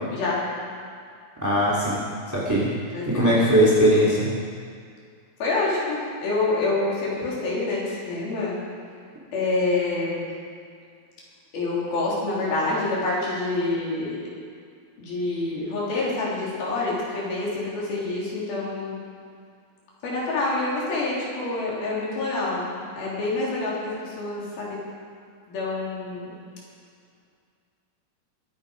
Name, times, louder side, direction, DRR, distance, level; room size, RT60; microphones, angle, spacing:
voice 1, 1.4-2.0 2.3-2.7 3.0-4.3, equal, 5° right, -7 dB, 1.5 m, -19 dB
voice 2, 2.9-3.3 5.4-8.6 9.3-10.3 11.5-14.2 15.0-19.0 20.0-24.8 25.5-26.3, left 2 dB, 60° left, -6 dB, 5.0 m, -27 dB
23.5 x 8.8 x 5.2 m, 2.2 s
omnidirectional pair, 4.9 m